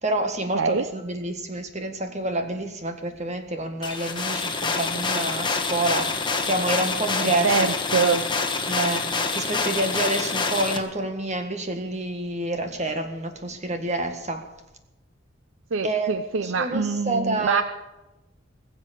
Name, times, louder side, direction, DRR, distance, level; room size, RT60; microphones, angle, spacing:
voice 1, 0.0-7.8 8.0-8.2 8.7-14.4 15.8-16.2 16.4-17.6, right 2 dB, 35° right, 6 dB, 1.8 m, -28 dB
sound 1, 3.8-10.8, left 4 dB, 25° left, 1.4 m, -26 dB
voice 2, 7.4-8.2 15.7-17.6, right 5 dB, 85° right, 11 dB, 0.6 m, -24 dB
20.5 x 7.8 x 7.5 m, 0.99 s
head